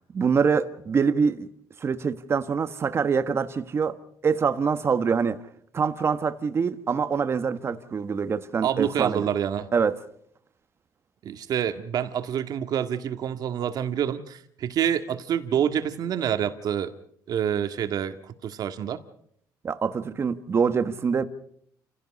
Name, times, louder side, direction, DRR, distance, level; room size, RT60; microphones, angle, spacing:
voice 1, 0.1-1.5 1.8-4.0 4.2-5.4 5.7-9.3 9.7-10.0 19.6-21.2, right 6 dB, 35° right, 1.4 m, -25 dB
voice 2, 8.6-9.7 11.2-16.9 17.3-19.0, right 9 dB, 60° right, 1.9 m, -27 dB
29.5 x 16.5 x 5.4 m
cardioid pair, 115°, 8 cm